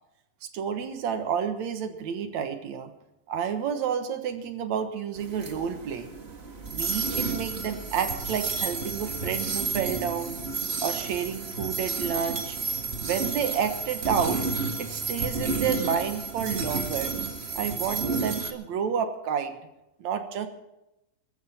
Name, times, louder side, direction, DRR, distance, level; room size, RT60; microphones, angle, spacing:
voice 1, 0.4-2.9 3.3-6.1 6.7-10.4 10.8-12.6 13.0-17.1 17.6-19.5 20.0-20.5, right 7 dB, 70° right, 7 dB, 2.6 m, -30 dB
sound 1, 5.2-18.5, right 4 dB, 30° right, 1.3 m, -31 dB
22.0 x 13.0 x 4.3 m, 0.90 s
omnidirectional pair, 3.4 m